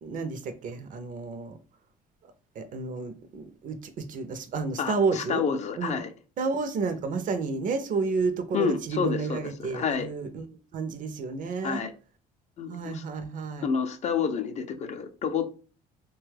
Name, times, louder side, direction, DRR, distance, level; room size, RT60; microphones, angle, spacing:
voice 1, 0.0-1.6 2.6-5.4 5.8-6.0 6.4-11.8 12.7-13.7, right 4 dB, 50° right, 0.5 m, -31 dB
voice 2, 4.8-6.1 8.5-10.1 11.6-11.9 12.6-13.0 13.6-15.6, left 6 dB, 45° left, 0.4 m, -29 dB
2.9 x 2.3 x 3.2 m
cardioid pair, 110°, 17 cm